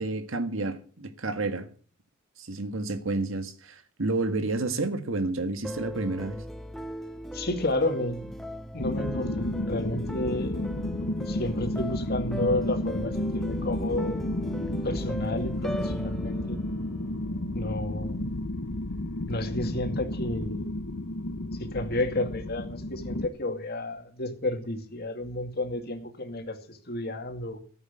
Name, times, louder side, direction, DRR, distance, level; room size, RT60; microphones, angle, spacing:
voice 1, 0.0-1.7 2.4-6.4, right 2 dB, 70° right, 1.7 m, -30 dB
sound 1, 5.6-17.8, equal, ahead, 0.9 m, -39 dB
voice 2, 7.3-8.4 8.7-10.7 11.3-14.3 14.8-16.6 17.5-18.4 19.3-20.6 21.6-27.6, left 1 dB, 50° left, 2.3 m, -31 dB
sound 2, 8.8-23.2, left 1 dB, 65° left, 1.2 m, -32 dB
14.0 x 8.2 x 8.2 m
head